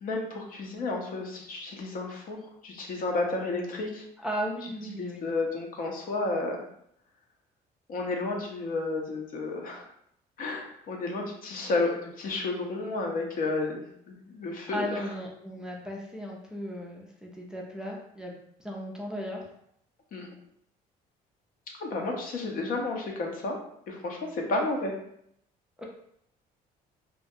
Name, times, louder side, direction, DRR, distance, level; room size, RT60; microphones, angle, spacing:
voice 1, 0.0-2.4 2.6-4.0 5.0-6.6 7.9-9.8 10.4-13.8 14.1-15.1 20.1-20.3 21.8-23.6 23.9-24.9, left 2 dB, 55° left, 1 dB, 0.6 m, -31 dB
voice 2, 4.2-5.3 14.7-18.4 18.6-19.4 25.8-25.9, equal, 5° right, -1 dB, 0.4 m, -36 dB
2.4 x 2.1 x 2.7 m, 0.71 s
cardioid pair, 110°, 17 cm